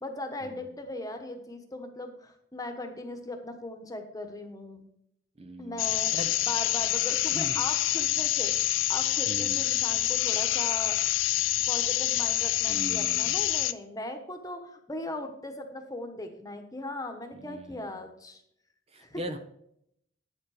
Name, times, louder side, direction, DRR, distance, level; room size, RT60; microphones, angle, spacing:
voice 1, 0.0-4.9 5.6-6.1 6.4-8.5 8.9-11.0 11.7-18.4 19.0-19.2, left 2 dB, 20° left, 5 dB, 1.2 m, -38 dB
voice 2, 5.4-5.8 6.1-6.3 7.3-7.6 9.3-9.6 12.7-13.3 17.3-17.9 18.9-19.4, right 1 dB, 30° right, 8 dB, 0.7 m, -39 dB
sound 1, 5.8-13.7, left 15 dB, 80° left, 0.4 m, -27 dB
9.6 x 7.2 x 4.9 m, 0.73 s
head